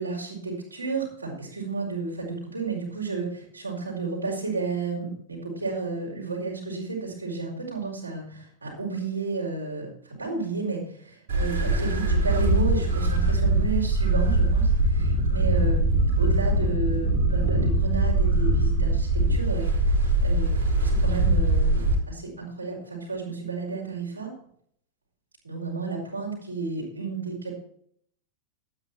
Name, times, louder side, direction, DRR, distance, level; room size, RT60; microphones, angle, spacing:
voice 1, 0.0-19.9 20.2-20.5 20.8-24.3 25.4-27.6, right 4 dB, 80° right, -3 dB, 4.5 m, -32 dB
sound 1, 11.3-22.0, right 2 dB, 60° right, 4.1 m, -22 dB
12.0 x 9.5 x 4.4 m, 0.63 s
figure-of-eight pair, 90°, 0 cm